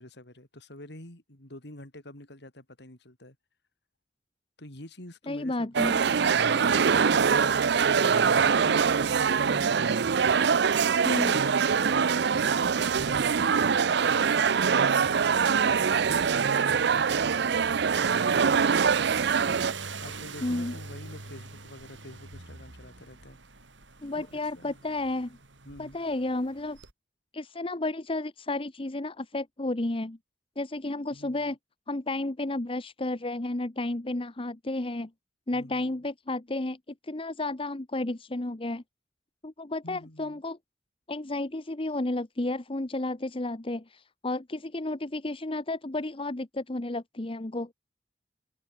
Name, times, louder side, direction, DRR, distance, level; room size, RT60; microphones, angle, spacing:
voice 1, 0.0-3.4 4.6-5.7 6.0-10.0 11.3-19.5 20.0-23.4 24.1-24.8 25.6-26.0 31.1-31.5 35.5-35.9 39.8-40.4, left 1 dB, 65° left, 4.3 m, -48 dB
voice 2, 5.3-5.9 11.0-11.4 20.4-20.7 24.0-25.4 25.8-26.8 27.3-30.2 30.6-31.6 31.9-35.1 35.5-36.8 37.0-38.8 39.4-40.6 41.1-47.7, left 2 dB, 30° left, 1.0 m, -32 dB
sound 1, 5.7-19.7, right 6 dB, 65° right, 0.5 m, -23 dB
sound 2, 14.4-26.9, right 4 dB, 90° right, 4.5 m, -45 dB
head